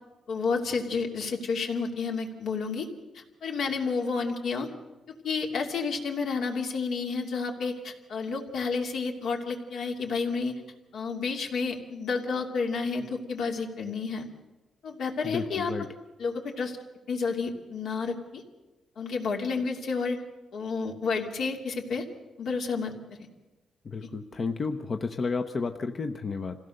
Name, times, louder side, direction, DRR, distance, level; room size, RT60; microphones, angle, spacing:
voice 1, 0.3-2.9 3.1-4.7 5.2-10.5 10.9-14.3 14.8-15.7 16.2-16.8 17.1-18.4 19.0-20.2 20.5-22.0 22.4-22.9, left 4 dB, 75° left, 1 dB, 2.9 m, -30 dB
voice 2, 15.2-15.9 23.9-26.6, left 4 dB, 40° left, 7 dB, 0.8 m, -32 dB
26.5 x 16.5 x 6.6 m, 1.1 s
cardioid pair, 125°, 0 cm